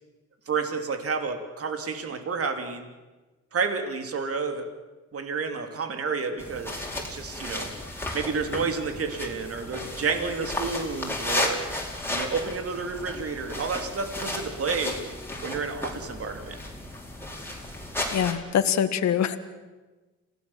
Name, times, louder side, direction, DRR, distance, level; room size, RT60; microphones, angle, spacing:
voice 1, 0.5-2.9 3.5-4.7 5.1-7.7 8.1-11.6 12.1-15.0 15.4-16.6, right 5 dB, 50° right, 6 dB, 3.0 m, -30 dB
sound 1, 6.4-18.3, left 1 dB, 5° left, 4.7 m, -34 dB
voice 2, 18.1-19.4, left 9 dB, 65° left, 10 dB, 1.6 m, -24 dB
27.0 x 17.5 x 7.4 m, 1.2 s
cardioid pair, 90°, 30 cm